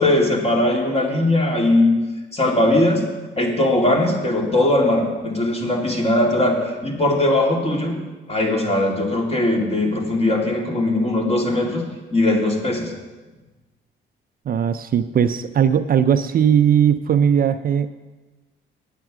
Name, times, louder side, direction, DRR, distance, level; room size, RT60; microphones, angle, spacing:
voice 1, 0.0-2.0 2.3-3.0 3.4-8.0 8.3-11.8 12.1-12.9, left 1 dB, 30° left, 1 dB, 2.3 m, -19 dB
voice 2, 14.5-17.9, right 8 dB, 50° right, 11 dB, 0.5 m, -18 dB
9.0 x 8.8 x 6.1 m, 1.2 s
cardioid pair, 90°, 20 cm